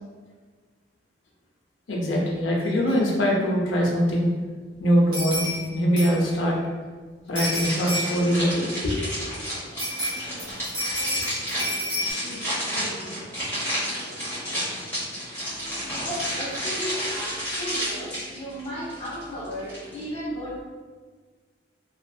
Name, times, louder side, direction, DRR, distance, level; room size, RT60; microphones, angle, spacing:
voice 1, 1.9-4.3 4.8-6.5 7.3-8.9, equal, 90° left, -2 dB, 0.6 m, -23 dB
sound 1, 2.9-3.0 3.3-3.4 5.1-5.6 6.0-6.3 7.3-8.3 9.8-12.1, left 1 dB, 25° right, 1.0 m, -30 dB
sound 2, 7.4-20.1, equal, 10° left, 1.1 m, -31 dB
voice 2, 16.0-20.6, equal, 35° left, -8 dB, 0.8 m, -34 dB
2.6 x 2.4 x 2.3 m, 1.5 s
head